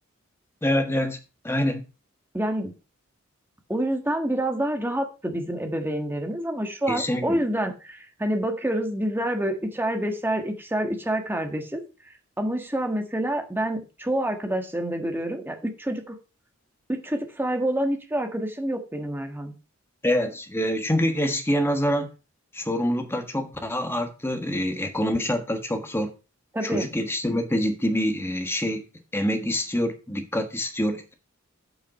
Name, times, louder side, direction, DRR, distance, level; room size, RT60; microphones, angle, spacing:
voice 1, 0.6-1.2 1.4-1.8 6.9-7.4 20.0-22.1 22.5-26.1 26.6-28.8 29.1-31.1, equal, 10° left, 6 dB, 1.4 m, -26 dB
voice 2, 2.3-2.7 3.7-11.8 12.4-16.1 16.9-19.5 26.5-26.9, right 1 dB, 10° right, 4 dB, 1.5 m, -27 dB
7.6 x 5.7 x 5.4 m, 0.32 s
head